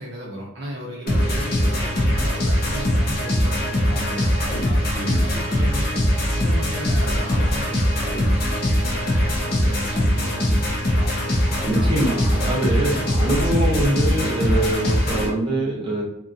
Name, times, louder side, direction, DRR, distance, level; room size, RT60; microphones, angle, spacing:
voice 1, 0.0-4.8 5.2-6.0 6.3-8.3 9.0-10.9, right 1 dB, 55° right, -3 dB, 0.5 m, -35 dB
sound 1, 1.1-15.3, equal, 45° left, 0.7 m, -21 dB
voice 2, 4.9-5.2 11.6-16.0, right 1 dB, 25° right, -4 dB, 0.8 m, -24 dB
2.8 x 2.3 x 2.6 m, 0.82 s
head